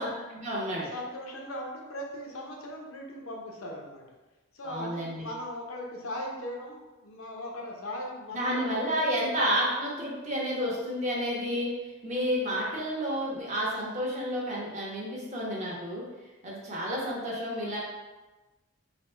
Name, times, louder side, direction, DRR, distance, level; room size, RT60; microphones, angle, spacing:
voice 1, 0.0-0.9 4.6-5.3 8.3-11.7 12.0-16.0 16.4-17.8, equal, 35° right, -5 dB, 1.1 m, -30 dB
voice 2, 0.8-4.0 4.5-9.4, left 1 dB, 75° left, 0 dB, 0.8 m, -39 dB
4.1 x 2.3 x 4.4 m, 1.1 s
head